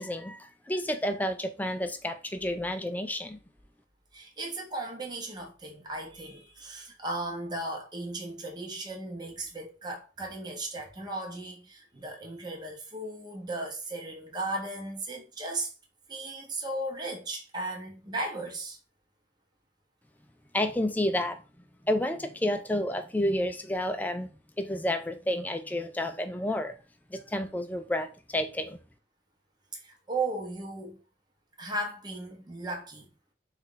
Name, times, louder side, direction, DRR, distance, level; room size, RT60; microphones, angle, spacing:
voice 1, 0.0-3.4 20.5-21.4 21.8-24.3 24.6-26.8 27.1-28.8, left 1 dB, 10° left, 0.4 m, -30 dB
voice 2, 4.1-15.7 16.1-18.8 29.7-31.0 31.6-33.1, right 2 dB, 25° right, 0.9 m, -36 dB
4.2 x 2.4 x 3.8 m
head